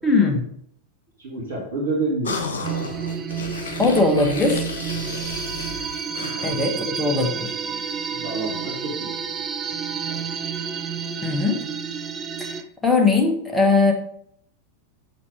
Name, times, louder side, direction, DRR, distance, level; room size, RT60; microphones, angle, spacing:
voice 1, 0.0-0.4 3.8-4.7 6.4-7.5 11.2-11.6 12.4-13.9, left 3 dB, 10° left, 1 dB, 1.7 m, -20 dB
voice 2, 1.2-3.0 4.3-4.4 6.3-6.5 6.8-6.9 7.3-7.8 8.1-9.5 10.1-10.2, right 2 dB, 60° right, -4 dB, 2.3 m, -30 dB
sound 1, 2.2-6.8, left 4 dB, 65° left, 1.6 m, -33 dB
sound 2, 2.6-12.6, right 6 dB, 25° right, 0.6 m, -30 dB
7.3 x 5.9 x 5.0 m, 0.67 s
figure-of-eight pair, 90°, 0 cm